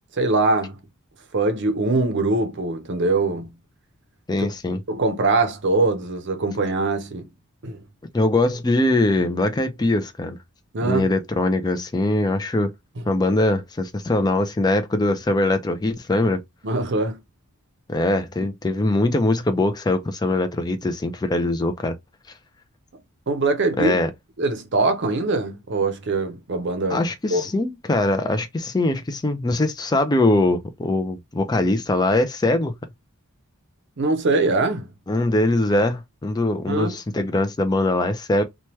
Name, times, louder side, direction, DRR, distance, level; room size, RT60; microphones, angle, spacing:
voice 1, 0.1-0.8 1.3-3.5 4.9-7.3 7.6-7.8 10.7-11.1 16.6-17.2 23.3-23.9 24.4-27.0 27.3-27.4 34.0-34.9 36.7-37.0, right 3 dB, 50° right, 0.6 m, -22 dB
voice 2, 4.3-4.8 8.1-10.4 10.8-12.7 13.1-16.4 17.9-21.9 23.8-24.1 26.9-32.7 35.1-38.4, left 2 dB, 20° left, 0.4 m, -22 dB
2.9 x 2.2 x 3.0 m
head